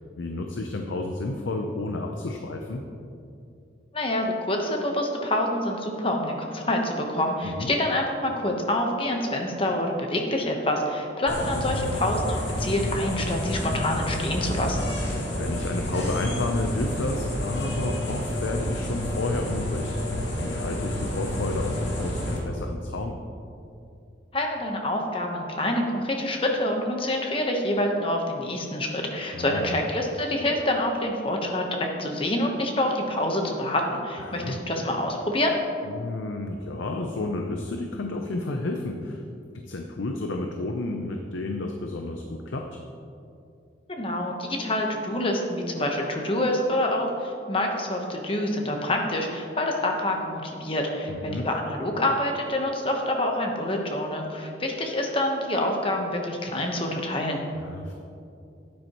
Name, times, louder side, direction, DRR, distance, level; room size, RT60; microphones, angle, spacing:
voice 1, 0.2-2.8 7.4-7.7 11.5-12.1 15.3-20.1 20.4-23.2 29.3-29.8 34.2-34.6 35.8-39.2 39.5-42.8 51.1-51.5 57.5-57.9, left 2 dB, 85° left, 3 dB, 0.6 m, -31 dB
voice 2, 3.9-14.9 24.3-35.5 43.9-57.4, left 1 dB, 30° left, 2 dB, 1.0 m, -27 dB
sound 1, 11.3-22.4, left 1 dB, 65° left, 2.1 m, -29 dB
12.0 x 9.5 x 3.0 m, 2.6 s
head